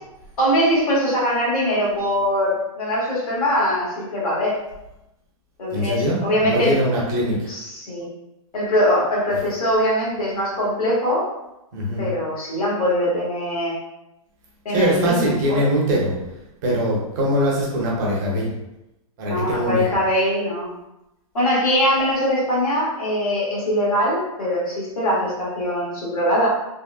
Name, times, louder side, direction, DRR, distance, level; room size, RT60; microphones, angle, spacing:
voice 1, 0.4-4.6 5.6-6.8 7.5-8.1 8.5-11.3 12.0-13.8 14.6-15.6 19.2-20.7 21.3-26.5, equal, 85° left, -5 dB, 1.4 m, -22 dB
voice 2, 5.7-7.6 11.7-12.1 14.7-16.1 16.6-18.5 19.2-19.8, equal, 30° right, -4 dB, 0.7 m, -22 dB
3.4 x 2.1 x 2.2 m, 0.91 s
hypercardioid pair, 160°, 18 cm